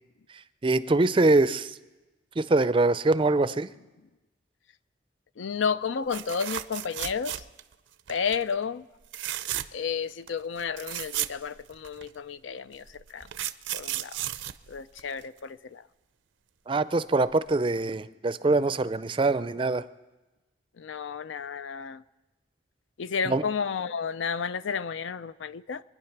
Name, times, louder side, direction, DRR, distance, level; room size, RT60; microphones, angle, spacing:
voice 1, 0.6-1.8 2.4-3.7 16.7-19.8 23.3-23.4, right 2 dB, 25° right, 0.4 m, -23 dB
voice 2, 5.4-7.4 8.1-8.9 9.7-14.2 14.7-15.9 20.8-22.0 23.0-25.8, left 6 dB, 85° left, 0.5 m, -32 dB
sound 1, 6.1-7.7 8.1-8.4 9.1-9.9 10.3-10.4 10.6-12.1 12.9-15.4 17.3-17.5 17.8-17.9, right 13 dB, 80° right, 0.5 m, -34 dB
24.5 x 10.0 x 5.9 m
head